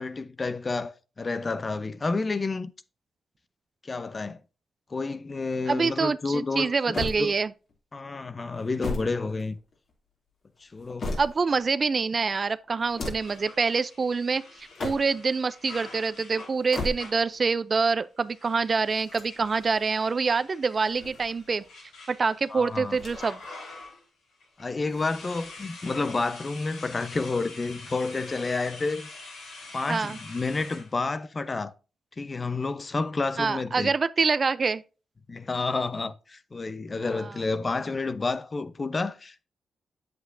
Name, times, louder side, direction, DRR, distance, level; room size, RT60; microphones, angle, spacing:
voice 1, 0.0-2.7 3.8-4.4 4.9-7.3 7.9-9.6 10.6-11.1 22.5-23.0 24.6-29.2 29.7-31.7 32.2-33.9 35.3-39.4, left 3 dB, 40° left, 0.8 m, -30 dB
voice 2, 5.7-7.5 11.2-14.4 14.8-21.6 22.1-23.4 29.9-30.2 33.4-34.8 37.2-37.3, right 4 dB, 50° right, 0.6 m, -26 dB
sound 1, 6.9-7.7 8.5-9.9 10.6-11.6 12.8-13.4 14.6-15.3 16.5-17.4 18.9-19.9 20.8-21.7 22.9-23.5 23.8-23.9 24.9-25.7, left 2 dB, 60° left, 2.9 m, -37 dB
sound 2, 13.2-17.3 18.2-24.1 24.4-30.9, left 3 dB, 85° left, 4.1 m, -46 dB
7.9 x 7.9 x 2.6 m
supercardioid pair, 45°, 0 cm